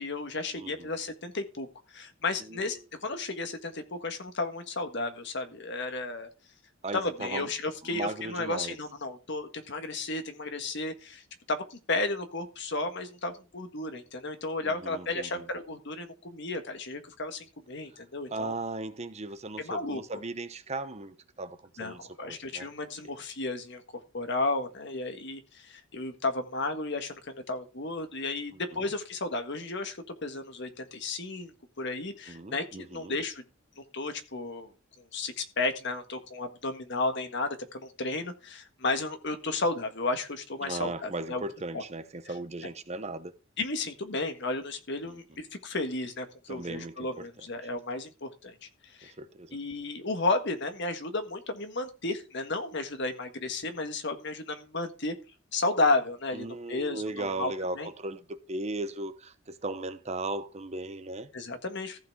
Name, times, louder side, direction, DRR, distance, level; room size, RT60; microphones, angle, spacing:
voice 1, 0.0-6.3 6.9-18.5 19.6-20.0 21.8-33.4 33.8-34.7 35.1-41.4 41.7-41.8 43.6-49.1 49.5-55.1 55.5-57.9 61.3-62.0, left 2 dB, 60° left, 1.6 m, -33 dB
voice 2, 0.5-0.9 2.4-2.7 6.8-7.5 7.8-8.8 14.6-15.5 18.3-22.7 23.0-23.1 28.7-28.9 32.3-33.2 40.6-43.3 45.1-45.2 46.5-47.5 49.2-49.6 56.3-61.3, right 2 dB, 35° right, 0.9 m, -37 dB
14.5 x 6.0 x 4.6 m
head